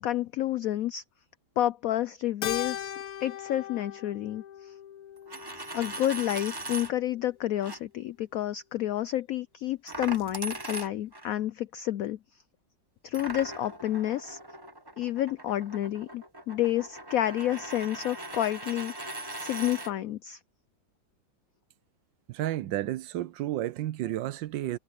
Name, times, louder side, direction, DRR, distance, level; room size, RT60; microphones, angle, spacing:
voice 1, 0.0-1.0 1.6-2.9 3.2-4.7 5.7-12.2 13.0-14.4 15.0-18.9 19.4-20.4, left 13 dB, 90° left, 0.7 m, -30 dB
Keyboard (musical), 2.4-7.0, left 10 dB, 60° left, 1.2 m, -39 dB
Coin (dropping), 5.2-6.9 7.6-7.8 9.9-11.3 13.1-19.9, right 2 dB, 15° right, 1.0 m, -40 dB
voice 2, 22.3-24.8, right 14 dB, 75° right, 1.3 m, -31 dB
omnidirectional pair, 2.0 m